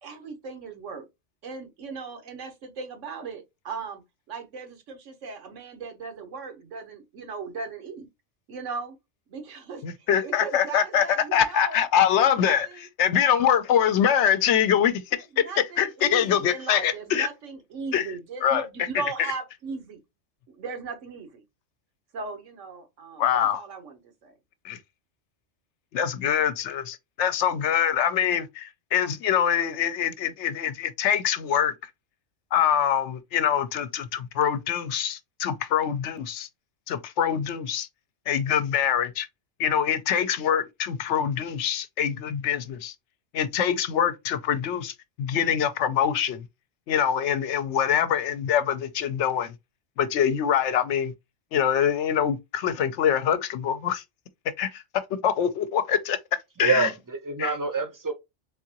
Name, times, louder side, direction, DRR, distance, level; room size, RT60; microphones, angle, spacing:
voice 1, 0.0-1.1 1.4-4.0 4.3-8.1 8.5-9.0 9.3-9.9 10.2-11.8 12.1-12.9 15.3-20.0 20.5-21.4 22.1-24.3, right 4 dB, 85° right, 1.4 m, -38 dB
voice 2, 9.8-11.1 11.3-15.0 15.4-17.3 17.9-18.1 18.4-18.7 23.2-23.6 24.6-24.8 25.9-31.7 32.5-36.5 36.9-37.9 38.3-39.3 39.6-42.9 43.3-46.4 46.9-49.5 50.0-51.1 51.5-54.0 54.6-54.8 55.2-56.2 56.6-56.9 57.4-57.5, left 9 dB, 75° left, 0.9 m, -24 dB
voice 3, 56.6-58.1, right 4 dB, 20° right, 0.6 m, -26 dB
3.8 x 3.6 x 2.8 m
omnidirectional pair, 1.2 m